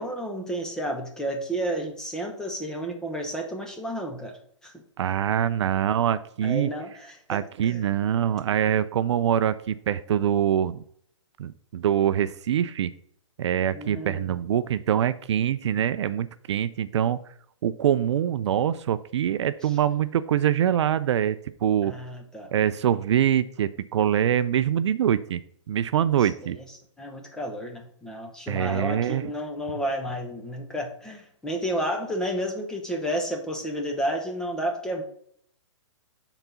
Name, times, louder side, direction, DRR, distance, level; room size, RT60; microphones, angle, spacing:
voice 1, 0.0-4.4 4.6-4.7 6.4-7.8 13.7-14.4 19.6-19.8 21.8-22.5 26.2-26.6 27.0-35.0, equal, 5° left, 2 dB, 0.7 m, -31 dB
voice 2, 5.0-6.7 7.3-10.8 11.4-12.9 13.4-17.2 17.6-21.9 22.5-25.4 25.7-26.6 28.5-29.2, right 10 dB, 60° right, 14 dB, 0.4 m, -24 dB
5.9 x 4.0 x 5.6 m, 0.65 s
hypercardioid pair, 155°, 16 cm